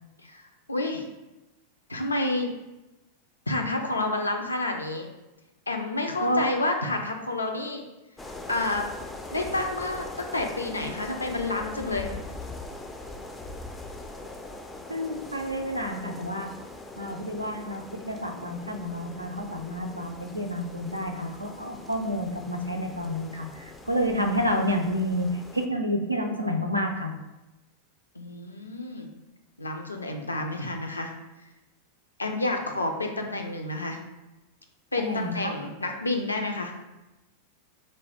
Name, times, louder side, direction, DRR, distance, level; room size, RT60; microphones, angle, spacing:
voice 1, 0.7-1.1 1.9-2.5 3.5-5.1 5.7-7.8 8.5-8.9 9.3-12.1 28.2-29.1 29.6-31.1 32.2-34.0 34.9-36.7, left 2 dB, 80° left, 3 dB, 0.4 m, -29 dB
sound 1, 8.2-25.7, left 2 dB, 10° left, 0.3 m, -42 dB
voice 2, 14.9-16.5 17.0-27.1 35.0-35.5, equal, 85° right, 3 dB, 0.4 m, -29 dB
3.2 x 2.2 x 4.1 m, 1.0 s
figure-of-eight pair, 90°, 0 cm